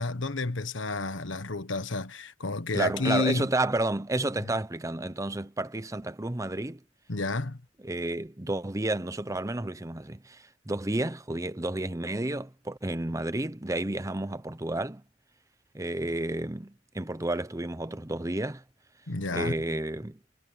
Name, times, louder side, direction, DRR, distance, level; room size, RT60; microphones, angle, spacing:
voice 1, 0.0-3.5 7.1-7.6 19.1-19.5, left 3 dB, 75° left, 1.4 m, -30 dB
voice 2, 2.7-6.8 7.8-15.0 15.7-18.6 19.3-20.2, right 2 dB, 15° right, 0.8 m, -31 dB
head